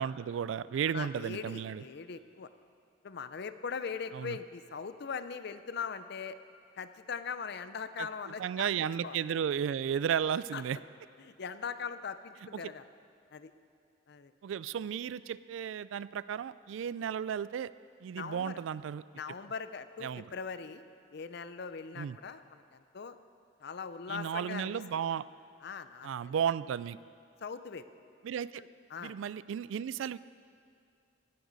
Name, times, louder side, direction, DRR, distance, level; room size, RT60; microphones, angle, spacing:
voice 1, 0.0-1.8 4.1-4.4 8.0-8.1 8.4-10.8 12.5-12.6 14.4-17.7 18.0-19.0 20.0-20.3 22.0-22.2 24.1-25.2 26.0-27.0 28.2-28.6 29.0-30.2, right 8 dB, 75° right, 17 dB, 0.3 m, -34 dB
voice 2, 0.9-2.5 3.0-6.4 6.8-9.2 10.5-10.6 11.2-12.8 13.3-13.5 14.1-14.3 18.1-18.6 19.1-20.8 21.1-23.2 23.6-24.8 25.6-26.3 27.4-27.9 28.6-29.1, left 6 dB, 55° left, 12 dB, 0.5 m, -41 dB
17.5 x 11.0 x 4.0 m, 2.3 s
head